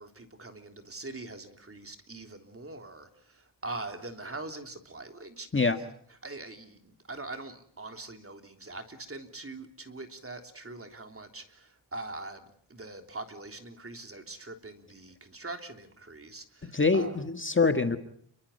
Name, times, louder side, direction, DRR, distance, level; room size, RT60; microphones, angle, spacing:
voice 1, 0.0-5.5 6.2-17.2, right 2 dB, 30° right, 6 dB, 3.4 m, -43 dB
voice 2, 16.6-18.0, left 4 dB, 25° left, 8 dB, 1.7 m, -25 dB
30.0 x 23.5 x 5.5 m, 0.64 s
wide cardioid pair, 110°, 45 cm